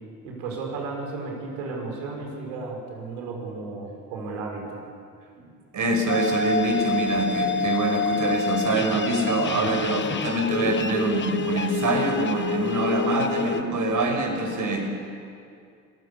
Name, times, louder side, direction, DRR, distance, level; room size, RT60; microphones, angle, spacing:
voice 1, 0.2-4.8, right 3 dB, 80° right, 0 dB, 5.9 m, -34 dB
voice 2, 5.7-14.9, right 2 dB, 45° right, 3 dB, 5.6 m, -24 dB
sound 1, 6.1-13.6, left 5 dB, 25° left, 1.0 m, -28 dB
26.0 x 16.5 x 7.0 m, 2.3 s
hypercardioid pair, 70°, 42 cm